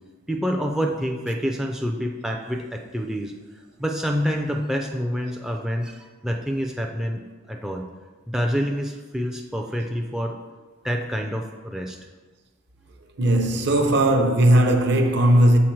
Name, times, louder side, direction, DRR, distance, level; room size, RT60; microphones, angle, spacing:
voice 1, 0.3-3.3 3.8-7.2 7.5-7.8 8.3-10.4 10.8-12.0, equal, 5° right, 0.3 m, -27 dB
voice 2, 13.2-15.6, right 1 dB, 60° right, 0.6 m, -17 dB
6.3 x 3.8 x 4.5 m
head